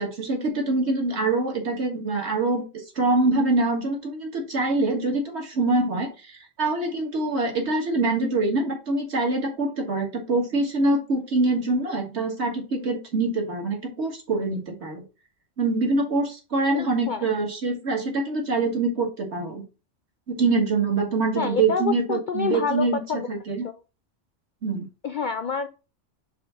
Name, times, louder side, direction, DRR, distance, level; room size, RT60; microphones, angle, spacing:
voice 1, 0.0-2.6 3.0-15.0 15.6-19.6 20.3-23.0 23.3-23.7 24.6-24.9, right 3 dB, 60° right, 1 dB, 1.9 m, -24 dB
voice 2, 16.7-17.2 21.4-23.3 23.6-23.7 25.0-25.7, left 6 dB, 60° left, 9 dB, 0.5 m, -27 dB
5.0 x 3.5 x 5.7 m, 0.31 s
omnidirectional pair, 1.3 m